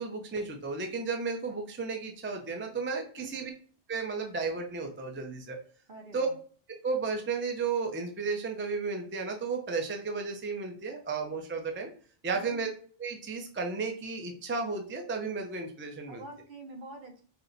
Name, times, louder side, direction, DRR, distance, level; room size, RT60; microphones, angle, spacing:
voice 1, 0.0-3.5 3.9-5.6 6.1-6.3 6.7-11.9 12.2-12.7 13.0-16.2, right 4 dB, 15° right, 3 dB, 0.4 m, -33 dB
voice 2, 5.9-6.4 12.3-12.6 16.1-17.2, right 3 dB, 55° right, 2 dB, 0.9 m, -46 dB
4.2 x 2.1 x 3.9 m, 0.43 s
omnidirectional pair, 1.0 m